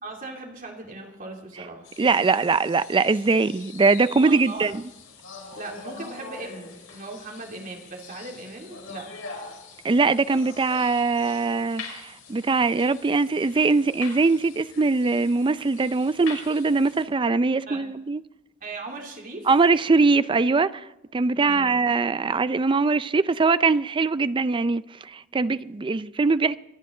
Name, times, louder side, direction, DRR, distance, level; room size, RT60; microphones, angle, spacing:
voice 1, 0.0-1.9 4.2-4.7 5.5-9.1 17.7-17.8 18.6-19.5 21.4-21.8, right 2 dB, 45° right, 2.8 m, -38 dB
sound 1, 1.8-17.0, left 4 dB, 85° left, 4.9 m, -44 dB
voice 2, 2.0-4.8 9.8-18.2 19.5-20.8 21.1-26.6, right 4 dB, 25° right, 0.4 m, -22 dB
25.5 x 10.0 x 3.8 m
head